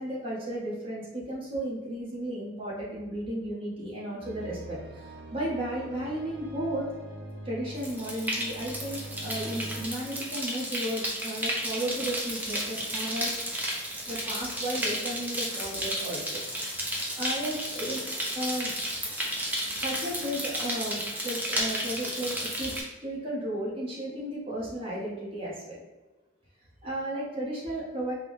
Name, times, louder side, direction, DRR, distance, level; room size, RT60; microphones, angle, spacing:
voice 1, 0.0-6.9 7.4-13.4 14.1-16.4 16.8-18.0 18.3-18.7 19.8-22.7 23.0-25.8 26.8-28.1, right 1 dB, 30° right, -7 dB, 1.4 m, -34 dB
sound 1, 4.2-9.8, right 1 dB, 65° right, 0.6 m, -43 dB
sound 2, 7.8-22.8, equal, 10° right, 0.6 m, -33 dB
4.5 x 2.4 x 3.4 m, 1.2 s
head